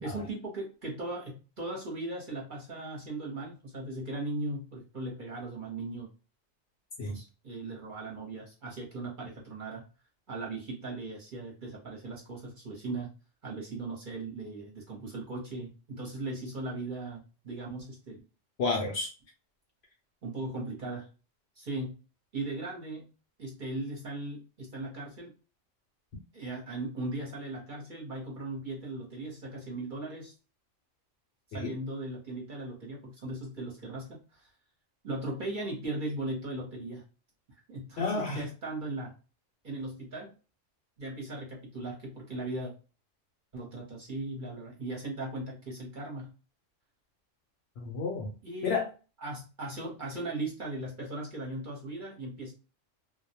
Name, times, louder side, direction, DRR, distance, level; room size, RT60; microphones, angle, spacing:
voice 1, 0.0-6.1 7.1-9.8 10.3-13.1 13.4-18.2 20.2-21.1 21.6-22.0 22.3-23.1 23.4-25.3 26.3-30.3 31.5-34.5 35.0-37.0 37.7-39.1 39.6-40.3 41.0-42.7 43.5-46.3 48.4-48.7 49.2-52.5, right 2 dB, 45° right, 0.8 m, -38 dB
voice 2, 18.6-19.1 31.5-31.7 38.0-38.5 47.8-48.3 48.6-48.9, left 4 dB, 65° left, 0.7 m, -31 dB
2.2 x 2.1 x 2.8 m
omnidirectional pair, 1.3 m